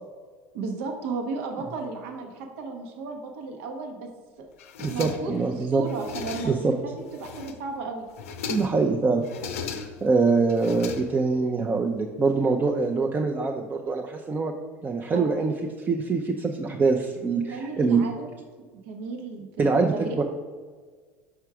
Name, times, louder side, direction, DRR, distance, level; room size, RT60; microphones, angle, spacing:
voice 1, 0.5-4.1 4.4-4.5 4.9-8.1 15.1-15.6 17.5-18.3 18.8-20.2, right 3 dB, 75° right, 3 dB, 1.0 m, -34 dB
sound 1, 4.6-5.5 5.8-6.7 7.1-7.7 8.1-8.9 9.2-10.1 10.5-11.5, left 6 dB, 90° left, 0.6 m, -37 dB
voice 2, 4.8-5.8 6.4-6.8 8.5-9.2 10.0-14.5 14.8-15.5 15.8-18.1 19.6-20.2, right 4 dB, 25° right, 2 dB, 0.6 m, -24 dB
6.0 x 4.5 x 4.8 m, 1.5 s
supercardioid pair, 100°, 7 cm